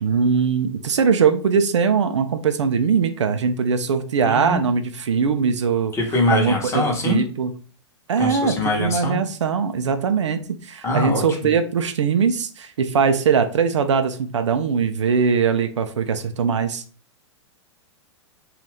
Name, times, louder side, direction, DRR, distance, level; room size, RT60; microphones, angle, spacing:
voice 1, 0.0-5.9 6.3-7.5 8.1-16.8, right 6 dB, 75° right, 9 dB, 0.4 m, -21 dB
voice 2, 4.2-4.6 5.9-7.2 8.2-9.2 10.8-11.2, left 2 dB, 20° left, 0 dB, 0.9 m, -23 dB
2.6 x 2.4 x 3.3 m, 0.40 s
figure-of-eight pair, 105°, 15 cm